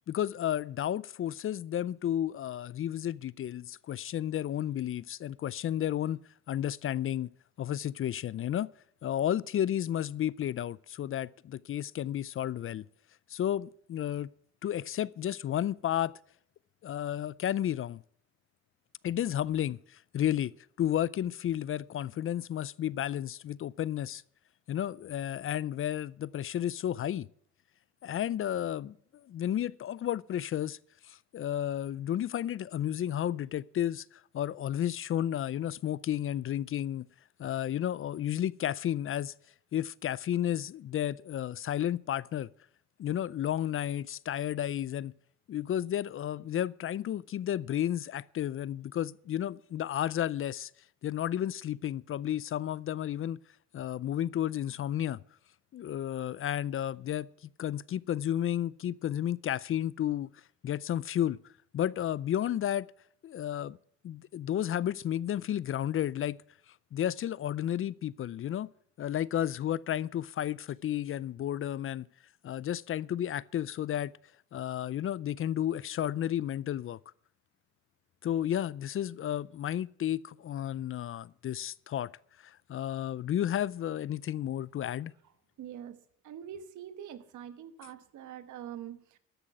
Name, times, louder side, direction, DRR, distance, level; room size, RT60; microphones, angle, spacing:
voice 1, 0.1-6.2 6.5-7.3 7.6-8.7 9.0-12.9 13.3-14.3 14.6-16.1 16.8-18.0 19.0-20.5 20.8-24.2 24.7-27.3 28.0-30.8 31.0-37.0 37.4-39.3 39.7-42.5 43.0-45.1 45.5-50.7 51.0-53.4 53.7-55.2 55.7-60.3 60.6-61.4 61.7-62.9 63.2-63.8 64.0-66.4 66.9-68.7 69.0-72.1 72.4-74.1 74.5-77.0 78.2-82.1 82.4-85.1, left 11 dB, 45° left, 0.4 m, -32 dB
voice 2, 85.6-86.0 86.2-89.2, right 9 dB, 75° right, 1.2 m, -44 dB
13.5 x 6.3 x 8.9 m
cardioid pair, 90°, 30 cm